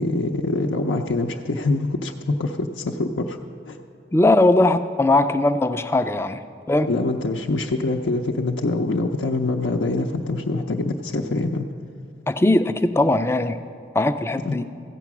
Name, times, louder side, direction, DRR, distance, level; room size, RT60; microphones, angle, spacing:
voice 1, 0.0-3.4 3.7-3.8 6.9-11.7 14.5-14.6, left 2 dB, 85° left, 1 dB, 0.6 m, -24 dB
voice 2, 4.1-6.4 6.7-6.9 12.3-13.6 13.9-14.6, left 2 dB, 15° left, 10 dB, 0.3 m, -19 dB
15.0 x 8.3 x 6.0 m, 2.6 s
head